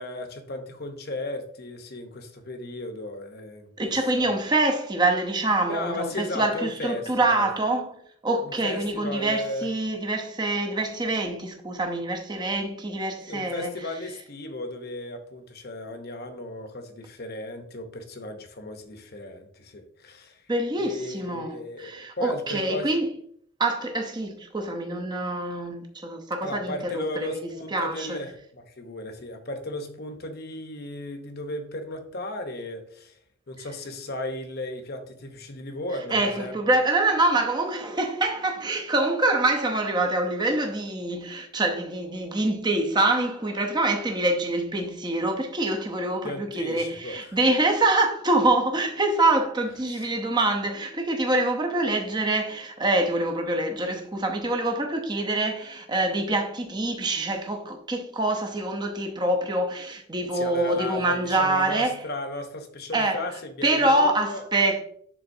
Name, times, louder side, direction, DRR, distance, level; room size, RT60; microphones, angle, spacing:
voice 1, 0.0-4.4 5.7-7.5 8.4-9.7 13.3-20.4 20.8-22.9 26.4-33.2 33.5-36.6 46.2-47.4 49.9-50.1 60.3-64.4, left 1 dB, 45° left, 0.8 m, -35 dB
voice 2, 3.8-13.7 20.5-23.1 23.6-28.2 36.1-62.0 62.9-63.3 63.6-64.8, right 2 dB, 20° right, 0.7 m, -25 dB
11.0 x 3.8 x 2.7 m
head